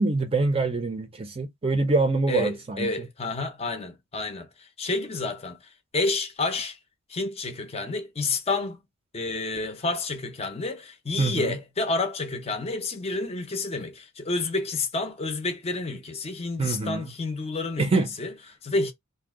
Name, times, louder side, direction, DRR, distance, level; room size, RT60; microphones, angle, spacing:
voice 1, 0.0-3.1 11.2-11.6 16.6-17.1 17.8-18.1, right 3 dB, 25° right, 0.5 m, -25 dB
voice 2, 2.3-5.6 5.9-6.8 7.1-8.8 9.1-17.9 18.2-18.3 18.6-18.9, left 3 dB, 30° left, 0.5 m, -29 dB
2.6 x 2.2 x 3.5 m
head